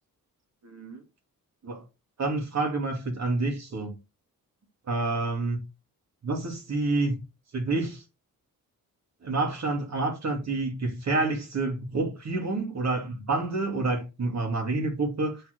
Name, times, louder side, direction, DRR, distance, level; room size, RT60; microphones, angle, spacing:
voice 1, 0.6-1.0 1.6-1.8 2.2-4.0 4.9-5.7 6.2-7.2 7.5-8.0 9.2-15.4, right 3 dB, 50° right, 2.8 m, -28 dB
8.5 x 4.5 x 4.7 m
cardioid pair, 105°, 35 cm